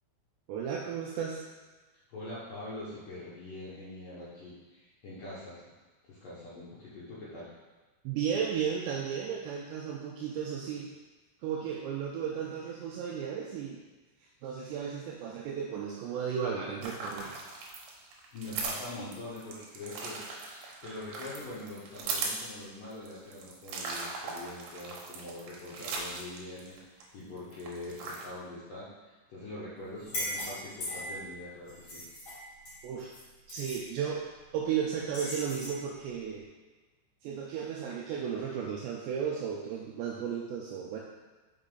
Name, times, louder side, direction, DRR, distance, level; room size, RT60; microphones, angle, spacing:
voice 1, 0.5-1.4 8.0-10.9 11.4-13.8 14.4-17.4 32.8-33.1 33.5-34.2 34.5-36.5 37.2-41.0, right 7 dB, 90° right, -2 dB, 2.5 m, -34 dB
voice 2, 2.1-5.6 6.1-7.5 18.3-32.1, left 2 dB, 75° left, -9 dB, 1.9 m, -44 dB
sound 1, 16.8-27.0 27.4-28.3, right 4 dB, 75° right, 2.7 m, -39 dB
sound 2, 30.0-31.3 31.7-33.2 33.5-33.8 35.1-35.8, left 1 dB, 40° left, 2.0 m, -38 dB
6.0 x 5.4 x 3.8 m, 1.2 s
omnidirectional pair, 5.6 m